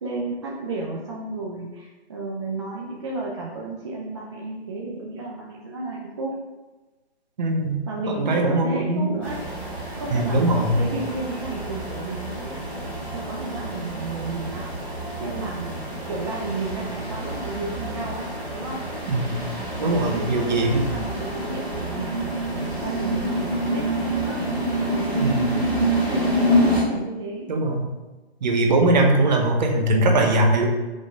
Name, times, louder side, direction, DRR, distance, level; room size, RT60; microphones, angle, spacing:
voice 1, 0.0-6.3 7.9-9.4 10.0-12.9 13.1-15.7 16.1-18.8 19.8-22.4 22.8-27.5, right 2 dB, 25° right, -3 dB, 0.5 m, -33 dB
voice 2, 7.4-7.8 8.2-9.2 10.1-10.8 19.1-19.3 19.8-20.8 25.1-25.5 27.5-27.9 28.4-30.7, right 2 dB, 40° right, 2 dB, 1.0 m, -21 dB
sound 1, 9.2-26.8, equal, 5° left, 1.6 m, -27 dB
5.4 x 3.7 x 5.0 m, 1.2 s
hypercardioid pair, 155°, 33 cm